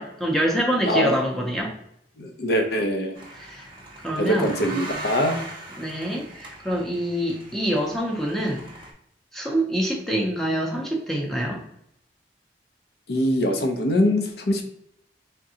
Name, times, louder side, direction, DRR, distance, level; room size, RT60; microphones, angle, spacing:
voice 1, 0.0-1.7 3.4-3.7 4.0-4.5 5.8-8.6 9.3-11.6, equal, ahead, -1 dB, 0.6 m, -25 dB
voice 2, 0.9-1.2 2.2-3.2 4.2-5.4 13.1-14.7, equal, 60° left, 3 dB, 0.7 m, -23 dB
sound 1, 3.2-8.9, right 1 dB, 25° right, 0.8 m, -39 dB
3.8 x 3.6 x 2.8 m, 0.72 s
head